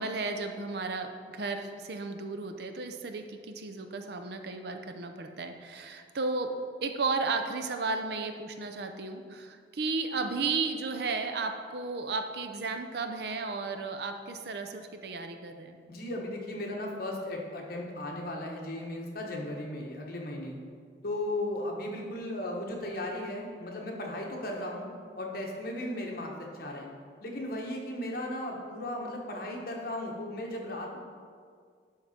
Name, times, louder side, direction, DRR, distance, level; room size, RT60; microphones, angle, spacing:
voice 1, 0.0-15.8, right 3 dB, 65° right, 6 dB, 0.6 m, -34 dB
voice 2, 15.9-20.6 21.0-24.9 25.2-26.9 27.2-31.0, left 1 dB, 55° left, 0 dB, 1.2 m, -36 dB
11.5 x 3.8 x 4.3 m, 2.1 s
head